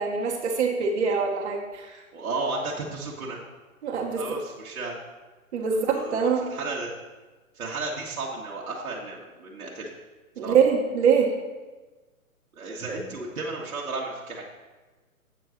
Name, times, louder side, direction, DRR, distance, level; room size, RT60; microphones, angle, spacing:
voice 1, 0.0-2.0 3.8-4.2 5.5-6.5 10.4-11.3, right 6 dB, 50° right, 0 dB, 1.3 m, -24 dB
voice 2, 2.1-3.4 4.2-5.0 5.8-6.9 7.6-9.9 10.4-10.6 12.5-14.4, right 3 dB, 70° right, -3 dB, 1.6 m, -33 dB
8.3 x 4.5 x 6.3 m, 1.2 s
hypercardioid pair, 135°, 43 cm